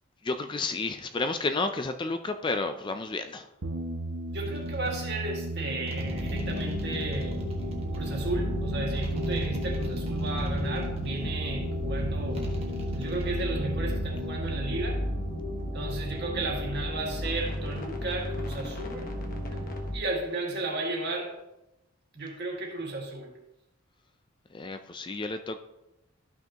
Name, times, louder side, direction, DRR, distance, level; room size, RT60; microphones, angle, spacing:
voice 1, 0.2-3.5 24.5-25.6, left 3 dB, 20° left, 8 dB, 0.4 m, -31 dB
sound 1, 3.6-16.8, right 2 dB, 80° right, 1.0 m, -36 dB
voice 2, 4.3-7.4 7.9-12.4 12.9-15.0 15.7-19.1 19.9-21.3 22.1-23.3, right 2 dB, 50° right, 0 dB, 1.9 m, -34 dB
sound 2, 4.4-4.9 5.9-8.0 8.9-11.2 12.3-13.3, equal, 25° right, 1.4 m, -41 dB
sound 3, 6.0-20.0, left 1 dB, 40° left, 1.2 m, -33 dB
13.0 x 5.9 x 2.9 m, 0.92 s
head